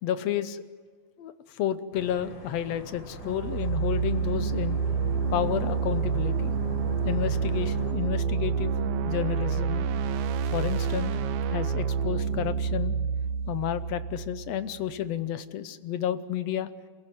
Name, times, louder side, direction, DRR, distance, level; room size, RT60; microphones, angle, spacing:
voice 1, 0.0-0.6 1.2-4.8 5.3-6.5 7.1-8.8 9.1-9.9 10.5-11.2 11.5-13.0 13.5-16.7, left 10 dB, 70° left, 12 dB, 1.9 m, -31 dB
sound 1, 1.9-7.9, right 1 dB, 35° left, 4.5 m, -42 dB
sound 2, 3.2-10.3, left 4 dB, 15° left, 1.8 m, -44 dB
sound 3, 3.2-15.0, right 6 dB, 90° right, 2.4 m, -28 dB
27.5 x 16.0 x 9.3 m, 1.5 s
omnidirectional pair, 3.4 m